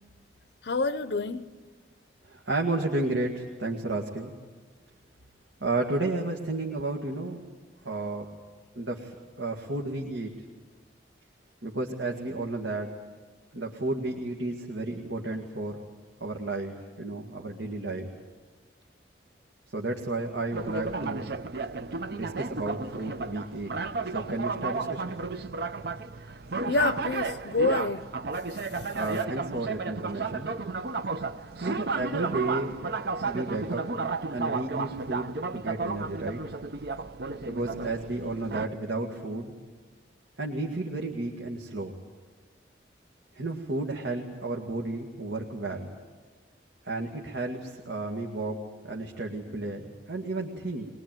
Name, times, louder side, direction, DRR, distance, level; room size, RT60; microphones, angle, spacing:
voice 1, 0.6-1.4 26.7-28.0 28.7-28.9, left 3 dB, 65° left, 0.7 m, -27 dB
voice 2, 2.3-4.3 5.6-7.4 7.9-8.3 8.8-10.3 11.6-12.9 13.5-15.8 16.2-18.1 19.7-21.3 22.1-23.7 24.1-25.2 28.9-30.5 31.6-32.7 33.2-33.8 34.3-36.4 37.5-39.5 40.4-41.9 43.4-46.0 46.8-50.9, right 2 dB, 85° right, 2.0 m, -32 dB
sound 1, 20.5-38.7, right 4 dB, 60° right, 0.7 m, -33 dB
21.5 x 21.5 x 9.1 m
head